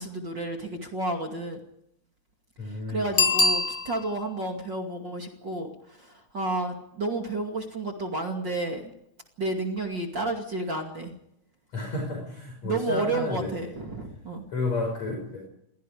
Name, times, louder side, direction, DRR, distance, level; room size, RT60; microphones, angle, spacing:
voice 1, 0.0-1.6 2.6-8.8 9.4-11.1 12.6-14.4, right 2 dB, 35° right, 3 dB, 2.8 m, -31 dB
voice 2, 2.6-3.2 11.7-13.8 14.5-15.5, left 2 dB, 60° left, 1 dB, 6.9 m, -31 dB
Bicycle bell, 3.1-4.3 9.8-9.9, left 3 dB, 35° left, 1.8 m, -24 dB
28.5 x 23.5 x 5.1 m, 0.76 s
omnidirectional pair, 3.6 m